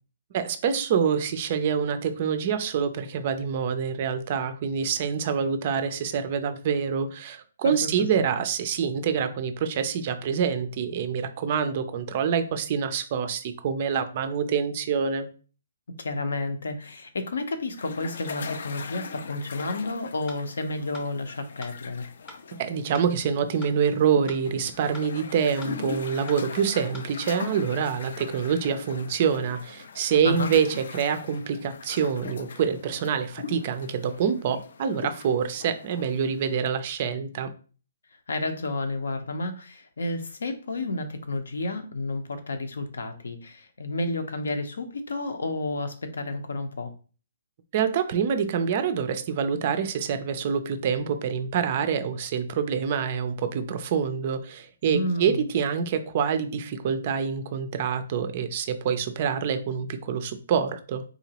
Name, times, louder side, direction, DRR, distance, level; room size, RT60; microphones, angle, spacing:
voice 1, 0.3-15.3 22.5-37.5 47.7-61.0, right 7 dB, 30° right, 10 dB, 0.3 m, -26 dB
voice 2, 16.0-22.1 30.2-30.5 38.3-46.9 54.9-55.5, left 2 dB, 80° left, 7 dB, 0.7 m, -31 dB
sound 1, 17.8-36.6, left 5 dB, 55° left, 0.3 m, -41 dB
sound 2, 20.3-20.4 20.9-21.1 21.6-21.7 22.3-22.4 22.9-23.1 23.6-23.7 24.3-24.4 24.9-25.1 25.6-25.7 26.3-26.4 26.9-27.1, left 2 dB, 15° left, 0.7 m, -43 dB
3.8 x 2.9 x 2.8 m, 0.38 s
hypercardioid pair, 175°, 0 cm